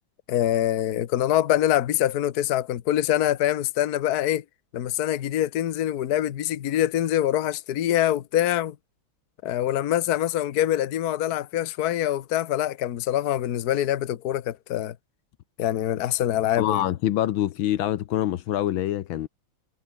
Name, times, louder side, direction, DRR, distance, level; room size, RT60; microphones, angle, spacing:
voice 1, 0.3-4.4 4.7-8.8 9.4-15.0 15.6-16.8, left 12 dB, 55° left, 1.3 m, -24 dB
voice 2, 16.6-19.3, left 12 dB, 75° left, 1.6 m, -25 dB
omnidirectional pair, 2.2 m